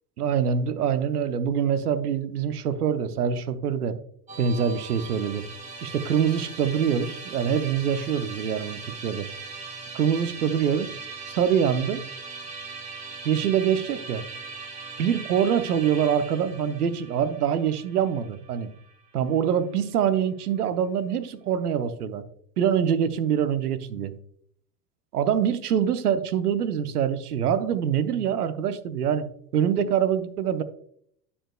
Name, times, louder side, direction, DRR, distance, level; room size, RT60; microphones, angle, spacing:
voice 1, 0.2-4.0 4.4-5.4 5.8-9.3 9.9-10.9 11.3-12.0 13.2-14.2 15.0-18.7 19.1-22.2 22.6-24.2 25.1-30.6, right 8 dB, 70° right, 11 dB, 0.9 m, -25 dB
Musical instrument, 4.3-19.5, right 4 dB, 15° right, 1.7 m, -40 dB
10.0 x 6.8 x 2.3 m, 0.66 s
figure-of-eight pair, 85°, 48 cm